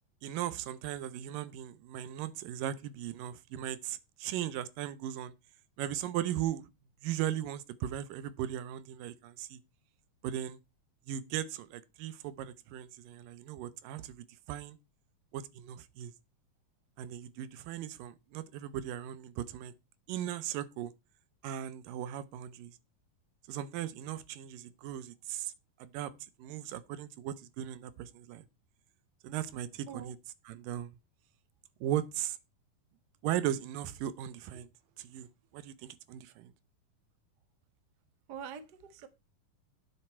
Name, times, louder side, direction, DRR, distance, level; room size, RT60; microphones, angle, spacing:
voice 1, 0.2-5.3 5.8-6.7 7.0-9.6 10.2-10.6 11.1-14.8 15.3-16.1 17.0-19.7 20.1-20.9 21.4-22.8 23.5-25.5 25.8-26.1 26.4-28.5 29.2-30.2 30.5-31.0 31.8-32.4 33.2-34.7 35.0-35.3 35.5-36.5, right 11 dB, 85° right, 2.6 m, -37 dB
voice 2, 38.3-39.1, right 8 dB, 55° right, 1.1 m, -44 dB
11.0 x 8.0 x 4.3 m
omnidirectional pair, 3.9 m